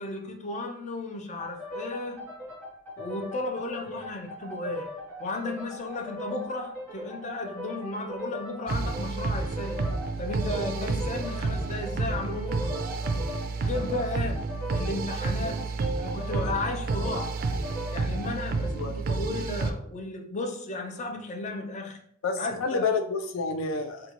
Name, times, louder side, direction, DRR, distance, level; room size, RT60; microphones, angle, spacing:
voice 1, 0.0-2.2 3.0-4.9 5.2-9.8 10.2-12.7 13.6-14.4 14.7-15.6 16.0-17.4 17.9-22.0 22.4-22.9, left 2 dB, 35° left, 4 dB, 0.5 m, -34 dB
sound 1, 1.4-18.8, left 1 dB, 10° left, 1.5 m, -40 dB
sound 2, 8.7-19.7, right 3 dB, 50° right, 0.3 m, -30 dB
voice 2, 18.7-19.1 22.2-24.1, left 4 dB, 90° left, 7 dB, 0.5 m, -29 dB
3.8 x 2.3 x 2.9 m, 0.65 s
head